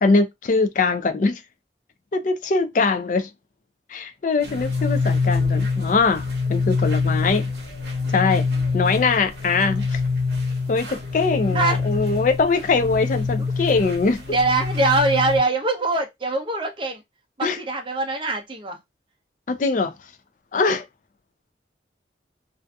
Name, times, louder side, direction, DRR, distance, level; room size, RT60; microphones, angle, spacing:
voice 1, 0.0-1.4 2.1-3.3 3.9-7.4 8.1-8.4 8.7-10.0 10.7-14.2 17.4-17.6 19.5-19.9 20.5-20.9, left 4 dB, 45° left, 0.4 m, -22 dB
sound 1, 4.4-15.4, left 4 dB, 65° right, 0.8 m, -25 dB
voice 2, 14.3-17.0 17.4-18.8, right 2 dB, 25° right, 0.5 m, -23 dB
2.6 x 2.4 x 2.2 m
head